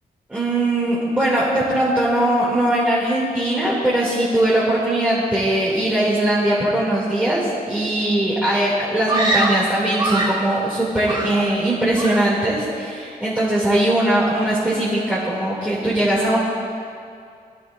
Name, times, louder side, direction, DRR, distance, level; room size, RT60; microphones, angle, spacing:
voice 1, 0.3-16.4, right 1 dB, 10° right, -9 dB, 2.6 m, -20 dB
Screaming, 9.1-10.5 11.0-11.7 12.0-12.4, right 2 dB, 30° right, 1.8 m, -23 dB
23.0 x 12.0 x 2.6 m, 2.4 s
wide cardioid pair, 140°, 16 cm